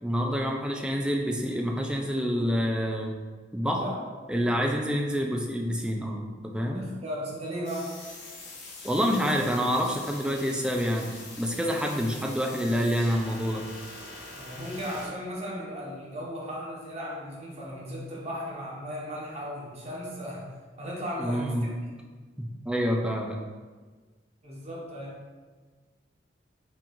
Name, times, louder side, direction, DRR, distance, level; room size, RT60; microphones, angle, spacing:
voice 1, 0.0-3.2 3.5-3.8 4.3-6.9 8.8-13.7 21.2-21.7 22.4-23.4, equal, 5° right, 1 dB, 0.3 m, -27 dB
voice 2, 3.6-4.0 6.7-7.9 14.3-20.5 20.8-21.7 24.4-25.2, equal, 35° right, -4 dB, 0.9 m, -36 dB
sound 1, 7.6-15.1, left 2 dB, 65° left, 1.1 m, -44 dB
4.3 x 2.4 x 3.8 m, 1.4 s
head